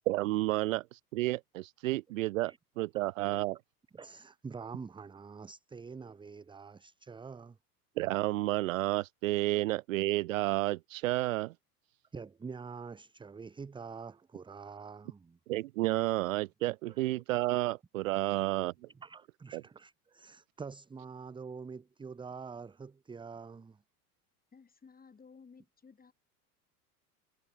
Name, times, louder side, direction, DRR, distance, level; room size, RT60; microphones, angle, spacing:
voice 1, 0.1-3.6 8.0-11.5 15.5-18.7 19.5-19.6, right 18 dB, 60° right, 0.6 m, -31 dB
voice 2, 2.9-3.4 3.9-7.6 12.1-15.4 16.9-17.0 19.0-23.8, right 5 dB, 10° right, 0.9 m, -46 dB
voice 3, 24.5-26.1, left 5 dB, 20° left, 7.8 m, -56 dB
figure-of-eight pair, 80°, 46 cm